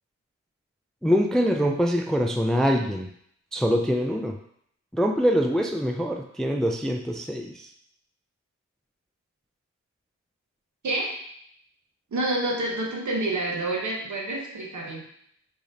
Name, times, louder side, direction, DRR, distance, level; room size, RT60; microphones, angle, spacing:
voice 1, 1.0-3.1 3.5-4.4 4.9-7.7, equal, ahead, 3 dB, 0.3 m, -24 dB
voice 2, 12.1-15.1, right 2 dB, 70° right, -1 dB, 1.0 m, -28 dB
3.8 x 3.2 x 2.6 m, 0.69 s
cardioid pair, 65°, 30 cm